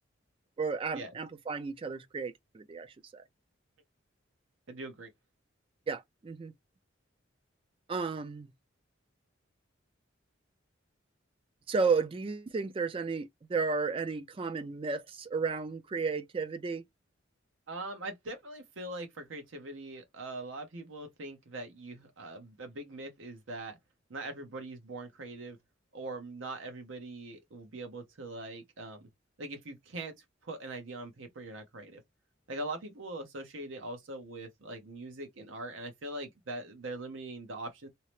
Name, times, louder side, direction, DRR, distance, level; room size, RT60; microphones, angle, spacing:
voice 1, 0.6-3.2 5.9-6.5 7.9-8.5 11.7-16.8, right 4 dB, 25° right, 0.3 m, -33 dB
voice 2, 4.7-5.1 17.7-23.8 24.1-25.6 25.9-29.1 29.4-30.1 30.4-32.0 32.5-37.9, right 2 dB, 80° right, 0.8 m, -42 dB
2.8 x 2.0 x 3.0 m
head